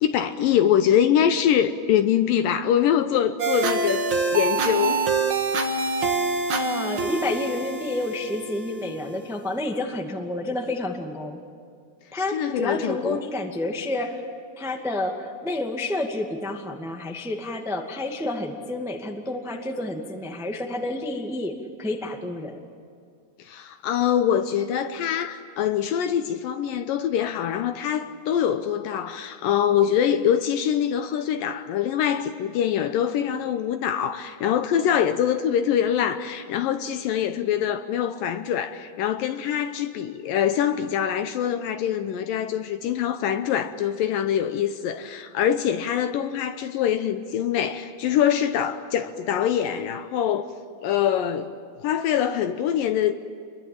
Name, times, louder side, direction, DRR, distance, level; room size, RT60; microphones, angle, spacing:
voice 1, 0.0-5.0 12.3-13.2 23.4-50.5 50.8-51.5 51.8-53.1, left 9 dB, 75° left, 2.2 m, -24 dB
sound 1, 3.4-9.4, right 3 dB, 50° right, 1.5 m, -26 dB
voice 2, 6.5-11.4 12.1-14.2 14.6-21.5 21.8-22.6, left 2 dB, ahead, 0.6 m, -29 dB
28.5 x 22.5 x 8.8 m
omnidirectional pair, 4.6 m